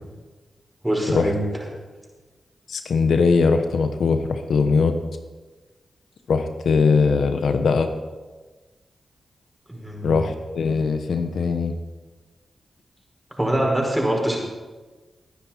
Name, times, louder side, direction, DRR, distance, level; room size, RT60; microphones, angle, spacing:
voice 1, 0.8-1.4 9.7-10.2 13.4-14.4, right 1 dB, 15° right, -1 dB, 5.0 m, -23 dB
voice 2, 2.7-4.9 6.3-7.9 10.0-11.7, left 5 dB, 80° left, 7 dB, 1.0 m, -20 dB
19.5 x 9.6 x 4.4 m, 1.3 s
cardioid pair, 50°, 0 cm